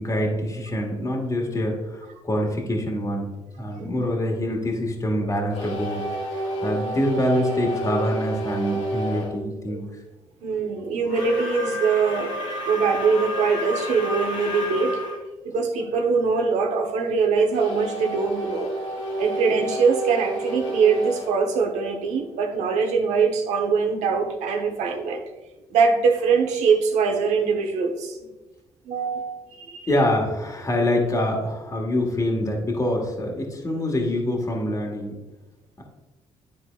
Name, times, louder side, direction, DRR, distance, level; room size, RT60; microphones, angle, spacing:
voice 1, 0.0-3.3 3.6-6.0 6.6-9.8 29.9-35.1 35.8-35.9, left 1 dB, 30° left, -1 dB, 1.5 m, -25 dB
voice 2, 3.7-4.1 9.7-9.8 10.4-15.0 15.4-18.7 19.2-25.2 25.7-28.2 28.9-29.8, right 5 dB, 80° right, 4 dB, 1.0 m, -23 dB
sound 1, 5.5-9.4 11.0-15.2 17.5-22.4, equal, 75° left, 1.7 m, -30 dB
10.0 x 3.9 x 2.4 m, 1.1 s
supercardioid pair, 70°, 12 cm